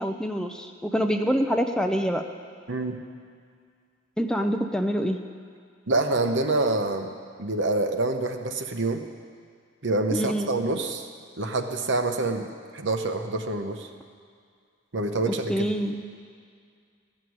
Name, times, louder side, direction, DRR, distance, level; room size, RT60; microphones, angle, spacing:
voice 1, 0.0-2.3 4.2-5.2 10.1-10.6 15.3-16.0, equal, 5° left, 5 dB, 0.5 m, -26 dB
voice 2, 5.9-9.0 9.8-11.1 11.4-13.9 14.9-15.6, right 2 dB, 60° right, 5 dB, 1.0 m, -26 dB
14.5 x 6.8 x 9.5 m, 2.1 s
head